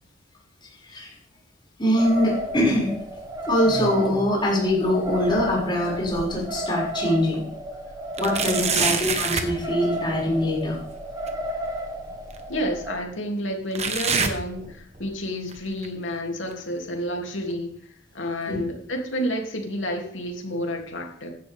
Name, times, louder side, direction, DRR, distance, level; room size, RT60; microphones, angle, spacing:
voice 1, 1.8-2.9 3.5-7.4 8.2-10.8 18.5-18.6, left 1 dB, 25° left, -5 dB, 6.5 m, -23 dB
sound 1, 2.0-12.9, equal, 20° right, 1.7 m, -33 dB
sound 2, 3.4-4.3 4.7-6.6 7.1-7.2 8.2-9.6 11.3-11.4 12.3-12.4 13.7-15.1 15.5-15.9 16.5-16.6 17.5-17.6, right 5 dB, 35° right, 1.4 m, -28 dB
voice 2, 8.4-9.0 12.5-17.7 18.1-21.3, equal, 80° left, 1 dB, 3.0 m, -30 dB
15.0 x 11.5 x 3.6 m, 0.65 s
head